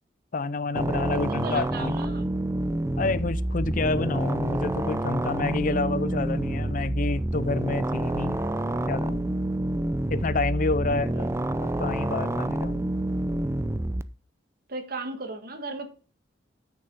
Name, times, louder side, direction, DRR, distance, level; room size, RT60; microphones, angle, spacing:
voice 1, 0.3-2.0 3.0-8.4 8.9-9.3 10.1-11.2 11.6-12.8, left 3 dB, 50° left, 0.5 m, -28 dB
sound 1, 0.8-14.0, right 1 dB, 15° right, 0.4 m, -28 dB
voice 2, 1.1-2.3 10.8-11.3 14.7-15.9, right 2 dB, 60° right, 1.6 m, -36 dB
8.4 x 6.6 x 5.3 m
head